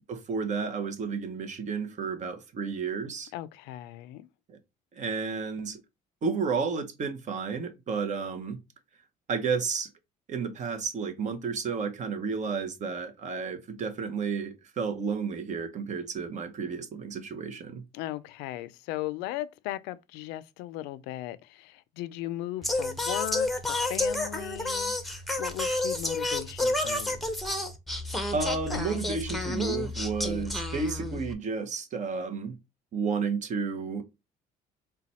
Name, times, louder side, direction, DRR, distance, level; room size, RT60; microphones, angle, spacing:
voice 1, 0.1-3.3 4.5-4.6 4.9-5.8 6.2-8.6 9.3-9.9 10.3-17.8 28.3-32.5 32.9-34.0, right 5 dB, 45° right, 0.8 m, -32 dB
voice 2, 3.3-4.3 17.9-24.9 25.4-27.3, left 15 dB, 90° left, 0.4 m, -37 dB
Singing, 22.6-31.3, left 2 dB, ahead, 0.8 m, -30 dB
4.0 x 2.2 x 4.1 m
cardioid pair, 100°, 17 cm